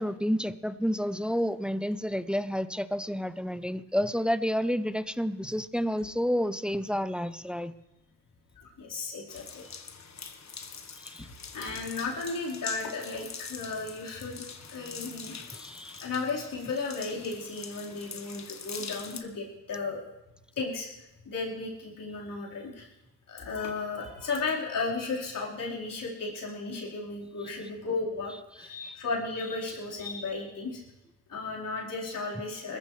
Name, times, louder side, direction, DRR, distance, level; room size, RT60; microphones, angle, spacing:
voice 1, 0.0-7.7 11.0-11.3 15.5-16.0 28.8-28.9, equal, 5° right, 14 dB, 0.6 m, -30 dB
voice 2, 8.6-9.8 11.5-20.0 20.6-22.9 23.3-30.8 31.3-32.8, left 3 dB, 70° left, -4 dB, 4.6 m, -35 dB
sound 1, 9.3-19.2, left 6 dB, 50° left, 1.5 m, -44 dB
20.5 x 14.5 x 3.3 m, 0.93 s
supercardioid pair, 50°, 34 cm